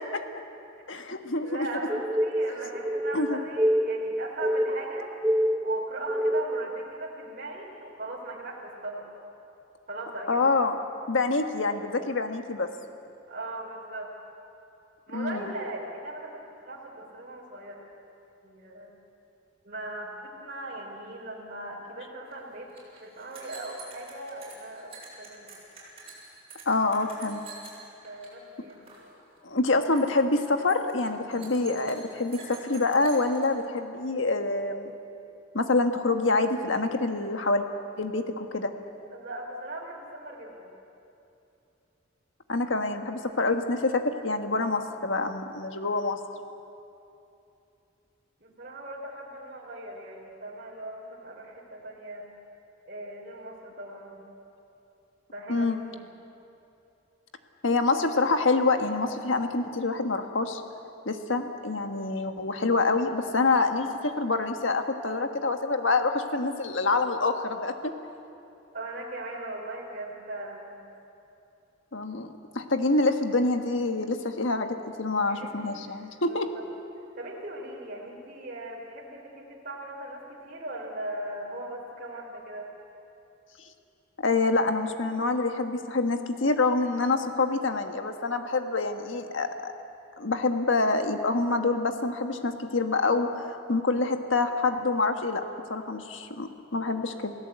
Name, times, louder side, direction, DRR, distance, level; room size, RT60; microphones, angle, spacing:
voice 1, 0.9-1.6 3.1-3.4 10.3-10.8 11.1-12.7 15.1-15.4 26.6-27.4 29.4-34.9 35.5-37.6 38.0-38.7 42.5-46.2 55.5-55.8 57.6-60.6 61.0-67.9 71.9-72.3 72.5-76.5 84.2-89.7 90.2-95.4 95.7-97.3, left 3 dB, 70° left, 6 dB, 1.6 m, -26 dB
voice 2, 1.4-5.1 5.6-9.1 9.9-10.4 13.3-14.1 15.1-16.4 16.7-17.8 18.4-18.9 19.6-22.7 23.0-25.5 28.0-28.8 39.1-40.7 48.4-52.3 52.9-54.2 55.3-56.0 68.7-70.8 75.2-76.6 77.2-82.7, right 1 dB, 45° right, -3 dB, 3.8 m, -39 dB
sound 1, 1.9-6.7, equal, 10° right, 0.8 m, -27 dB
sound 2, 22.3-22.4 22.6-28.3 28.6-29.1 29.4-29.6 29.9-30.2 30.6-33.5, right 3 dB, 30° right, 7.5 m, -47 dB
28.5 x 17.0 x 8.2 m, 2.8 s
head